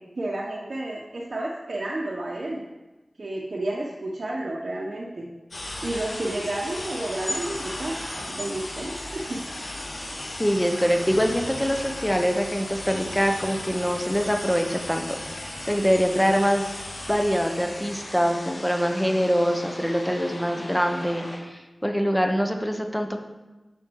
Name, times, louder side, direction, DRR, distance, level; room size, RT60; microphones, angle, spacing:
voice 1, 0.2-2.6 3.2-5.3 5.8-9.4, right 1 dB, 60° right, -4 dB, 1.2 m, -31 dB
sound 1, 5.5-21.4, left 1 dB, 70° left, 2.6 m, -36 dB
voice 2, 10.4-16.7 17.1-23.2, equal, 5° left, 4 dB, 1.1 m, -24 dB
10.5 x 6.3 x 4.8 m, 1.1 s
wide cardioid pair, 70°, 0 cm